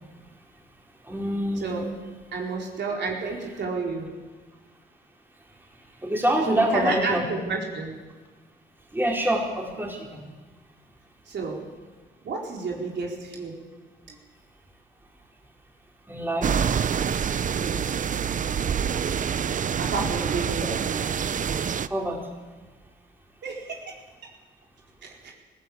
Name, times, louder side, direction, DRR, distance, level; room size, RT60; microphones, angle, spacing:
voice 1, 1.0-1.9 6.0-7.3 8.9-10.3 16.1-16.6 21.9-22.3, right 1 dB, 10° right, -1 dB, 4.4 m, -26 dB
voice 2, 1.6-1.9 2.3-4.1 6.5-7.9 11.3-11.6 12.2-13.5 14.1-14.2 17.5-18.0 19.8-20.7 23.4-24.0 25.0-25.3, right 4 dB, 60° right, -1 dB, 4.4 m, -31 dB
sound 1, 16.4-21.9, right 7 dB, 40° right, 0.7 m, -26 dB
20.0 x 15.5 x 8.7 m, 1.3 s
cardioid pair, 90°, 20 cm